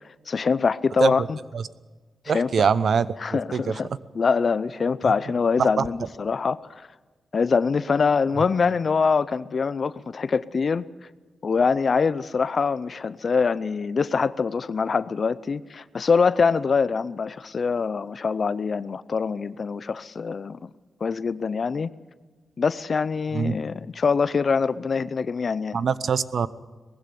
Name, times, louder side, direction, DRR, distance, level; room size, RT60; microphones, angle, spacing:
voice 1, 0.3-1.4 2.2-2.6 3.2-3.9 4.1-6.9 7.3-10.9 11.4-20.7 21.0-21.9 22.6-25.8, left 5 dB, 55° left, 16 dB, 0.6 m, -24 dB
voice 2, 2.3-3.1 3.3-3.6 5.0-5.1 5.6-5.9 23.3-23.6 25.7-26.5, right 6 dB, 65° right, 16 dB, 0.8 m, -23 dB
19.5 x 15.5 x 9.5 m, 1.3 s
cardioid pair, 60°, 0 cm